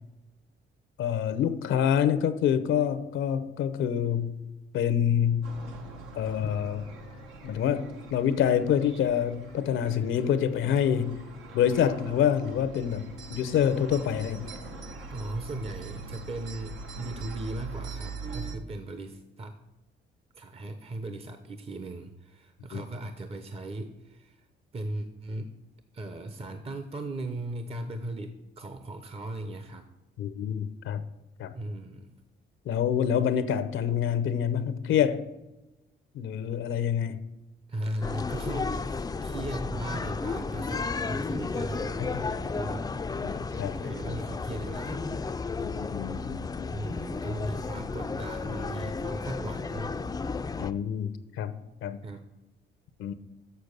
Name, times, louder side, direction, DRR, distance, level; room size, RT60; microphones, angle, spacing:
voice 1, 1.0-4.4 4.7-5.5 6.1-6.9 7.4-11.3 11.5-14.6 22.7-22.8 30.2-31.0 31.4-31.5 32.7-35.3 36.1-37.2 42.1-42.2 43.2-43.7 45.6-46.8 50.6-52.0 53.0-53.1, left 9 dB, 80° left, 0.7 m, -27 dB
sound 1, 5.4-18.6, right 3 dB, 85° right, 1.2 m, -42 dB
voice 2, 15.1-19.6 20.3-24.5 24.7-25.5 25.9-29.9 31.5-32.1 37.7-42.9 43.7-45.5 46.7-50.0 52.0-52.2, right 1 dB, 30° right, 0.7 m, -37 dB
sound 2, 38.0-50.7, left 4 dB, 20° left, 0.4 m, -33 dB
6.8 x 6.6 x 6.5 m
cardioid pair, 90°, 20 cm